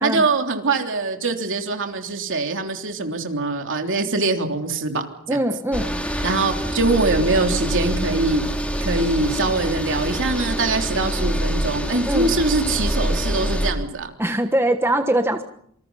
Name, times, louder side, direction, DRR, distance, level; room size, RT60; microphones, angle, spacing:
voice 1, 0.0-5.0 6.2-8.4 8.8-14.1, right 3 dB, 60° right, 4 dB, 3.4 m, -23 dB
voice 2, 5.3-5.9 12.0-12.3 14.2-15.4, right 1 dB, 10° right, 6 dB, 1.3 m, -22 dB
sound 1, 5.7-13.7, equal, 5° left, 3.8 m, -25 dB
27.5 x 26.0 x 5.7 m, 0.68 s
head